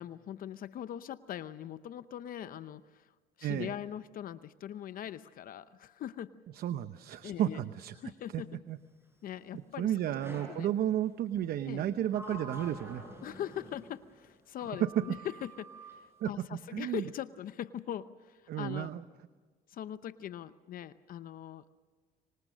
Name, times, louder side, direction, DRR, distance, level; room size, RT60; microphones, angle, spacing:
voice 1, 0.0-3.1 3.4-6.3 7.2-7.6 8.0-8.6 9.2-10.1 10.5-10.7 11.7-11.8 13.2-18.9 19.7-21.7, left 10 dB, 55° left, 13 dB, 0.7 m, -41 dB
voice 2, 3.4-3.7 6.5-7.9 8.3-8.8 9.8-13.0 14.8-15.0 16.2-16.3 16.7-17.1 18.5-19.0, right 11 dB, 65° right, 12 dB, 0.8 m, -32 dB
Sliding door, 10.2-10.7 11.7-14.1 14.6-16.0, right 1 dB, 15° right, 7.5 m, -47 dB
26.0 x 25.0 x 6.3 m, 1.5 s
cardioid pair, 110°, 17 cm